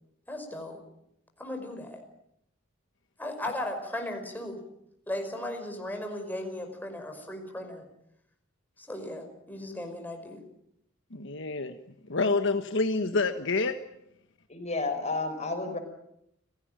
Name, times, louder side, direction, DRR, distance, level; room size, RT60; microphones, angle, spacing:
voice 1, 0.3-0.8 1.4-2.0 3.2-4.6 5.1-7.8 8.8-10.4, left 1 dB, 10° left, 3 dB, 5.3 m, -36 dB
voice 2, 11.1-11.8 12.1-13.8, left 3 dB, 65° left, 7 dB, 1.4 m, -27 dB
voice 3, 14.5-15.8, left 3 dB, 35° left, 7 dB, 5.3 m, -31 dB
30.0 x 17.0 x 9.1 m, 0.79 s
head